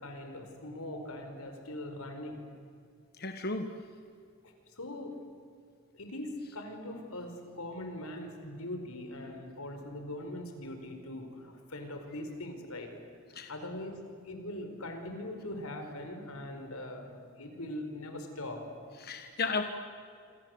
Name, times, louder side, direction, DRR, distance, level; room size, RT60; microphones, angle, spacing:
voice 1, 0.0-2.4 4.4-5.2 5.9-12.9 13.5-18.6, left 1 dB, 85° left, 5 dB, 4.9 m, -41 dB
voice 2, 3.2-3.6 13.3-13.5 19.0-19.6, left 4 dB, 45° left, 6 dB, 1.4 m, -33 dB
27.0 x 26.5 x 8.0 m, 2.3 s
head